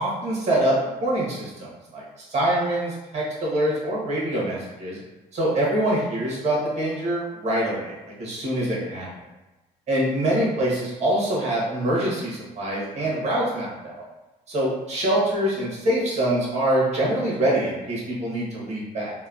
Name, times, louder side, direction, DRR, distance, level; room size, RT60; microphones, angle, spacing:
voice 1, 0.0-5.0 5.3-7.9 8.2-9.1 9.9-14.0 14.5-19.1, right 1 dB, 40° right, -5 dB, 1.2 m, -24 dB
3.0 x 2.3 x 2.4 m, 1.1 s
cardioid pair, 110°, 17 cm